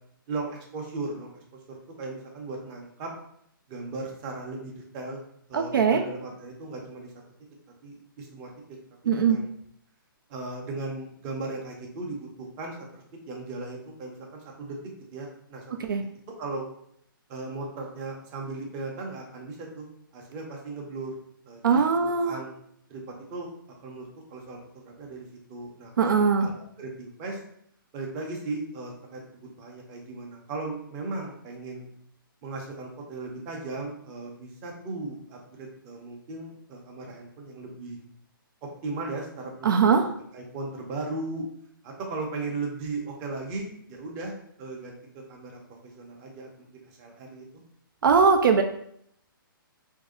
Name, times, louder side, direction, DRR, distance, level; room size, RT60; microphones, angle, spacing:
voice 1, 0.3-1.3 1.7-3.1 3.7-5.2 5.5-7.1 7.8-8.5 9.0-9.5 10.3-16.0 16.4-16.6 17.3-19.9 20.1-21.1 21.4-22.5 22.9-23.5 23.8-27.4 27.9-31.9 32.4-38.0 38.6-40.0 40.3-41.4 41.8-47.4, right 3 dB, 20° right, 0 dB, 0.6 m, -37 dB
voice 2, 5.5-6.0 9.1-9.4 15.8-16.0 21.6-22.4 26.0-26.5 39.6-40.0 48.0-48.6, right 5 dB, 65° right, 4 dB, 0.4 m, -21 dB
3.1 x 2.7 x 3.7 m, 0.69 s
hypercardioid pair, 160°, 12 cm